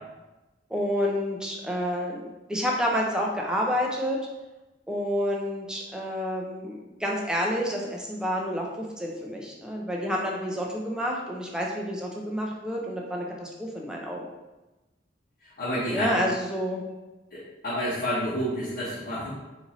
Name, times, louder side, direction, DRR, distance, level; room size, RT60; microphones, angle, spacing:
voice 1, 0.7-4.2 4.9-14.3 15.9-16.8, equal, 5° right, -2 dB, 0.4 m, -29 dB
voice 2, 15.6-16.2 17.3-19.3, equal, 55° left, -10 dB, 1.0 m, -29 dB
3.9 x 2.6 x 3.0 m, 1.1 s
head